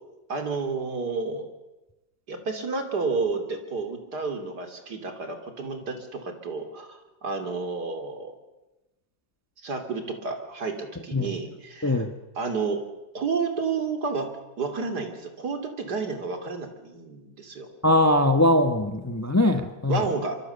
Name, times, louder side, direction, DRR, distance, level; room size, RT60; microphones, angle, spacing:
voice 1, 0.3-1.5 2.3-8.3 9.6-12.0 12.4-12.8 13.1-14.3 14.6-17.7 19.9-20.4, right 4 dB, 60° right, 5 dB, 3.4 m, -30 dB
voice 2, 17.8-20.0, left 1 dB, 10° left, 7 dB, 1.1 m, -21 dB
25.0 x 24.5 x 7.1 m, 1.0 s
omnidirectional pair, 2.0 m